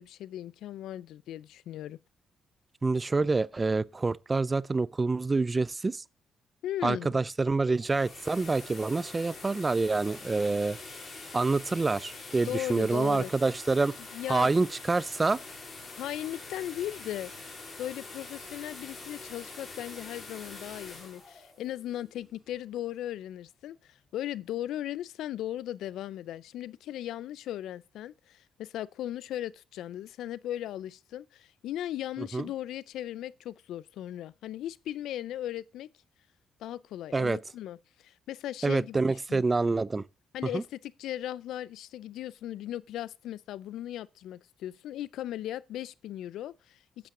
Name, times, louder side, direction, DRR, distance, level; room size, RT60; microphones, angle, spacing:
voice 1, 0.0-2.0 6.6-7.2 12.5-13.3 14.1-14.5 15.9-17.3 17.8-35.9 36.6-39.4 40.3-47.1, left 12 dB, 80° left, 0.4 m, -37 dB
voice 2, 2.8-6.0 6.8-10.8 11.3-14.0 14.3-15.4 32.3-32.5 37.1-37.4 38.6-40.0 40.5-40.6, right 3 dB, 25° right, 0.4 m, -27 dB
sound 1, 7.7-22.5, left 3 dB, 40° left, 3.9 m, -45 dB
8.8 x 8.5 x 3.7 m
cardioid pair, 90°, 0 cm